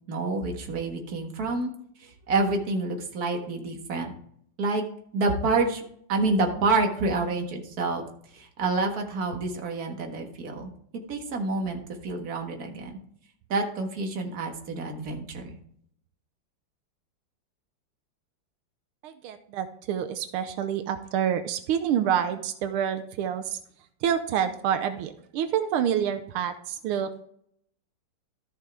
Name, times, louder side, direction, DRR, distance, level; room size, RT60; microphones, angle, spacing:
voice 1, 0.1-1.7 2.0-4.1 4.6-4.8 5.1-5.8 6.1-8.0 8.3-10.7 11.1-13.0 13.5-15.6, right 3 dB, 45° right, 3 dB, 1.9 m, -28 dB
voice 2, 19.0-23.6 24.0-27.2, right 9 dB, 85° right, 9 dB, 1.6 m, -28 dB
13.5 x 6.5 x 3.5 m, 0.66 s
omnidirectional pair, 2.4 m